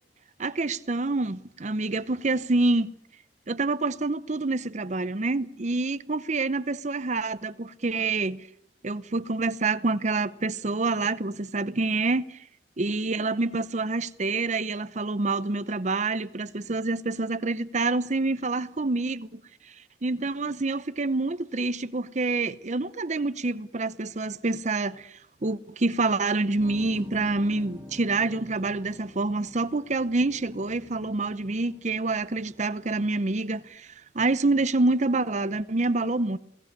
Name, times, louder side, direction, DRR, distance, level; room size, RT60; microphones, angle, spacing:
voice 1, 0.4-2.9 3.5-8.4 8.8-12.4 12.8-19.4 20.0-33.9 34.1-36.4, right 3 dB, 45° right, 0.8 m, -27 dB
sound 1, 26.6-33.7, left 1 dB, 15° right, 4.2 m, -47 dB
28.0 x 18.5 x 6.7 m
head